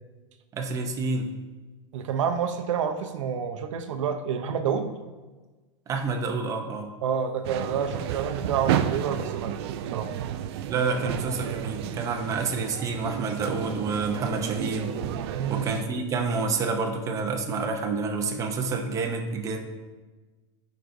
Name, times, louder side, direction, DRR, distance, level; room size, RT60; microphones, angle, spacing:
voice 1, 0.5-1.3 5.9-6.9 10.7-14.9 15.5-19.6, right 4 dB, 20° right, 3 dB, 0.7 m, -28 dB
voice 2, 1.9-4.9 7.0-10.1 15.3-15.8, right 7 dB, 90° right, 6 dB, 0.7 m, -29 dB
sound 1, 7.4-15.8, right 10 dB, 55° right, 0.4 m, -31 dB
12.5 x 5.2 x 2.6 m, 1.3 s
supercardioid pair, 150°, 16 cm